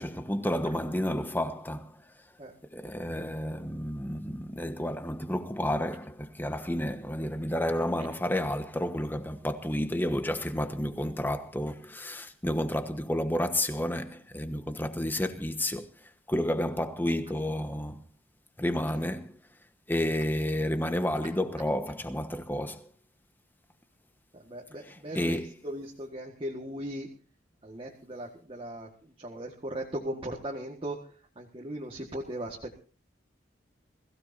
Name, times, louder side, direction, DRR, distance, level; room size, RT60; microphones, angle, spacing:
voice 1, 0.0-2.0 2.7-15.9 16.3-18.0 18.6-19.3 19.9-22.9 24.9-25.5, left 1 dB, 10° left, 1.2 m, -31 dB
voice 2, 24.3-27.1 27.6-32.8, right 1 dB, 30° right, 1.7 m, -38 dB
22.0 x 16.0 x 2.7 m
head